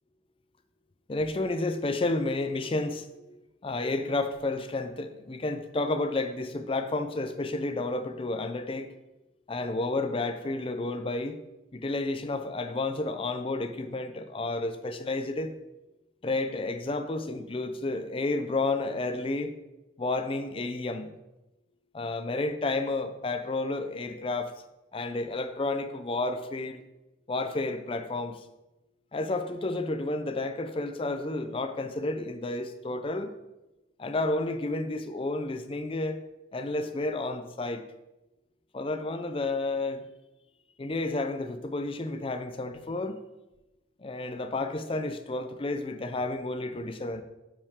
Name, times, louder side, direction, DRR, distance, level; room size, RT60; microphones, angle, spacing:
voice 1, 1.1-3.4 3.6-8.9 9.5-11.4 11.7-15.5 16.2-19.5 20.0-21.1 21.9-24.5 24.9-26.8 27.3-28.4 29.1-33.3 34.0-36.2 36.5-37.8 38.7-40.0 40.8-43.2 44.0-47.2, left 2 dB, 30° left, 9 dB, 0.5 m, -31 dB
9.6 x 5.4 x 3.6 m, 1.0 s
head